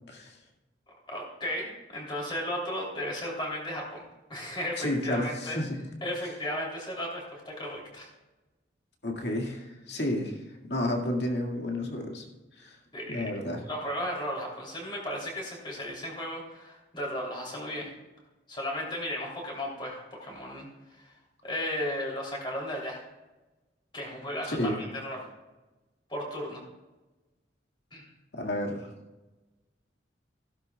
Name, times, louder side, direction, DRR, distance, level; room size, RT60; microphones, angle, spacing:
voice 1, 1.1-4.0 4.3-5.6 6.0-8.1 12.9-13.3 13.7-17.9 18.5-20.7 21.0-21.1 21.4-23.0 23.9-25.2 26.1-26.6 27.9-28.1, equal, 25° left, -2 dB, 3.3 m, -35 dB
voice 2, 4.8-5.8 9.0-10.3 10.7-12.2 12.6-12.7 13.1-13.6 24.6-24.8 28.3-28.9, left 1 dB, 70° left, 1 dB, 2.1 m, -31 dB
15.5 x 12.0 x 2.4 m, 1.1 s
head